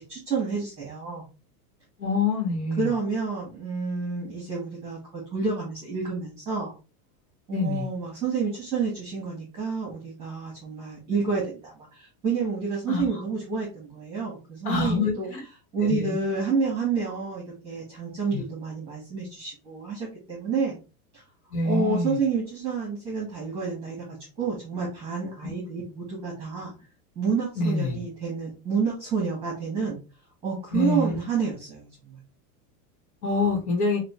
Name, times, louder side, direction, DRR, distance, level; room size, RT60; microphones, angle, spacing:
voice 1, 0.1-1.2 2.8-6.7 7.5-15.3 15.7-20.8 21.1-21.2 21.6-24.0 24.4-26.7 27.1-30.0 30.4-32.2, right 5 dB, 10° right, -4 dB, 1.6 m, -29 dB
voice 2, 2.0-2.9 7.5-7.9 12.9-13.1 14.6-15.4 15.8-16.2 18.3-18.4 21.5-22.2 27.6-28.0 30.7-31.2 33.2-34.0, left 3 dB, 55° left, 1 dB, 1.5 m, -26 dB
5.9 x 2.6 x 3.2 m, 0.31 s
supercardioid pair, 175°, 46 cm